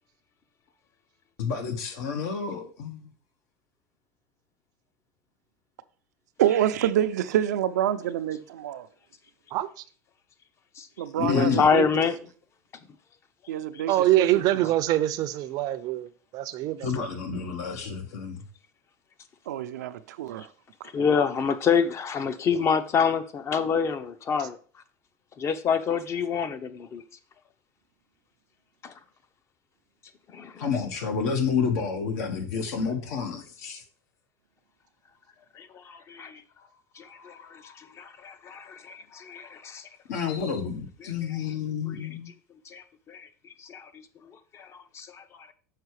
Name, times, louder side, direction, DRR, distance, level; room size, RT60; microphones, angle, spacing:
voice 1, 1.4-3.1 11.2-11.6 16.8-18.4 30.6-33.8 40.1-42.3, left 6 dB, 75° left, 1.4 m, -29 dB
voice 2, 6.4-8.9 11.0-11.9 13.5-14.7 19.5-20.5 21.0-21.1, right 11 dB, 90° right, 0.6 m, -27 dB
voice 3, 11.2-12.2 20.9-24.6 25.4-27.0 28.8-28.9 30.3-30.6 35.6-36.4 37.0-39.9 40.3-40.5 41.0-41.4 41.8-42.1 42.7-43.3 43.6-44.0 44.5-45.2, left 6 dB, 30° left, 0.7 m, -27 dB
voice 4, 13.9-17.0, right 14 dB, 45° right, 0.6 m, -25 dB
6.6 x 4.7 x 4.8 m
supercardioid pair, 120°, 9 cm